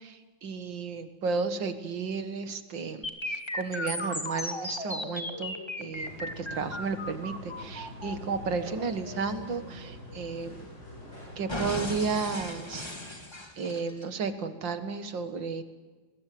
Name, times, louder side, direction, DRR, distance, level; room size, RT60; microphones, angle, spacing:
voice 1, 0.4-3.1 3.5-5.5 5.8-6.1 6.4-10.6 11.4-12.9 13.6-15.6, right 4 dB, 65° right, 10 dB, 2.3 m, -33 dB
sound 1, 3.0-11.0 11.5-14.0, left 1 dB, 15° left, 2.0 m, -37 dB
sound 2, 5.9-12.4, left 1 dB, 50° left, 8.1 m, -45 dB
23.5 x 21.0 x 7.7 m, 1.3 s
omnidirectional pair, 2.2 m